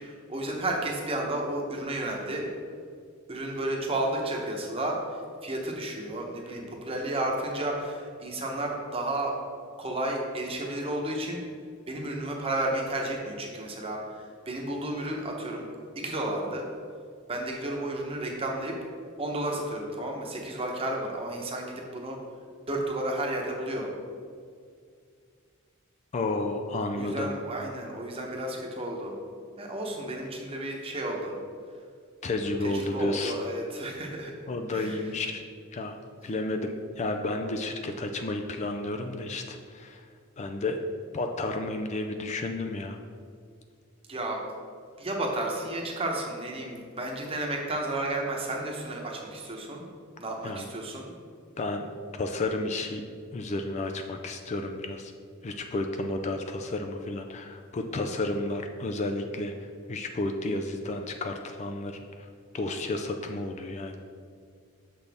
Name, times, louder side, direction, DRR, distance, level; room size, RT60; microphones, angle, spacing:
voice 1, 0.0-2.5 3.3-5.0 5.4-9.3 9.8-11.4 11.9-15.7 16.0-16.7 17.3-18.7 19.2-22.2 22.7-23.9 26.9-29.1 29.6-31.3 32.6-34.3 34.7-35.0 44.1-44.4 45.0-49.8 50.2-51.1, right 1 dB, 25° right, 0 dB, 0.9 m, -32 dB
voice 2, 26.1-27.4 32.2-33.3 34.5-35.4 35.7-40.0 40.4-40.8 41.1-43.0 50.4-50.7 51.6-51.9 52.2-53.0 53.3-55.1 55.4-62.3 62.5-64.0, left 2 dB, 35° left, 5 dB, 0.4 m, -32 dB
6.8 x 6.0 x 3.5 m, 2.2 s
head